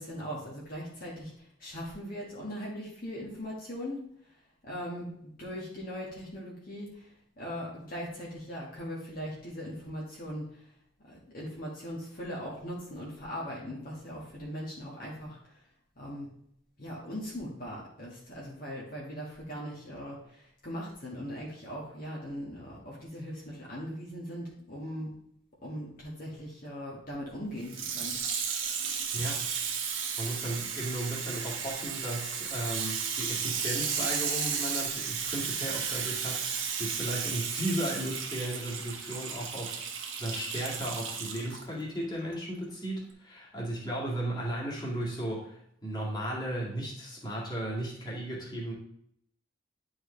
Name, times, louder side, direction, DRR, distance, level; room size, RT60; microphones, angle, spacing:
voice 1, 0.0-10.7 11.1-15.6 16.0-16.3 16.8-25.2 25.6-28.1, equal, 45° left, -5 dB, 1.6 m, -40 dB
Water tap faucet / Sink (filling or washing), 27.6-41.6 42.3-42.4, right 6 dB, 80° right, 1.2 m, -34 dB
voice 2, 29.1-29.5 29.9-39.8 40.2-48.7, right 1 dB, 20° left, -5 dB, 2.1 m, -35 dB
10.0 x 4.8 x 3.2 m, 0.71 s
head